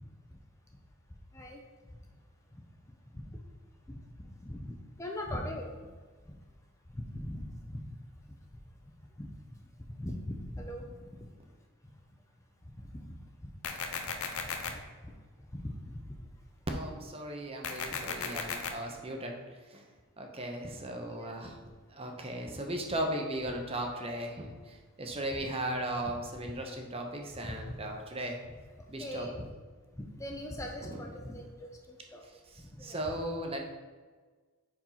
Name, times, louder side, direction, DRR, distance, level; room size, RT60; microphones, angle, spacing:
voice 1, 4.4-5.7 6.3-6.4 6.9-7.8 9.2-9.3 9.9-10.9 12.9-13.2 14.7-14.8 15.0-15.1 15.5-16.2 21.0-21.3 27.4-27.7 29.0-29.5 30.0-32.2 32.6-33.1, left 1 dB, 15° left, 1 dB, 0.5 m, -40 dB
sound 1, 13.6-14.7 17.6-18.7, left 6 dB, 70° left, 0.7 m, -35 dB
voice 2, 16.7-19.4 19.7-19.8 20.2-21.6 21.9-28.4 28.9-29.3 30.8-31.0 32.5-33.6, right 1 dB, 25° right, 2 dB, 0.7 m, -37 dB
4.7 x 4.5 x 5.6 m, 1.4 s
head